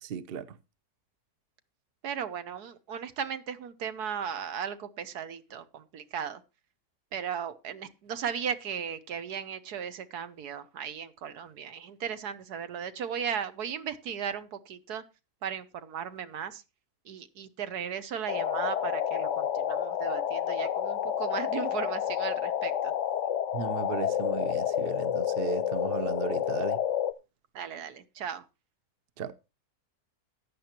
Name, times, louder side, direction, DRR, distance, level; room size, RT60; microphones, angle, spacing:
voice 1, 0.0-0.6 23.5-26.8 29.2-29.3, right 7 dB, 50° right, 0.7 m, -36 dB
voice 2, 2.0-6.4 7.1-15.0 15.4-16.6 17.1-22.9 27.5-28.4, right 8 dB, 80° right, 1.5 m, -36 dB
sound 1, 18.3-27.1, left 10 dB, 60° left, 0.9 m, -29 dB
14.5 x 9.7 x 2.9 m
omnidirectional pair, 1.7 m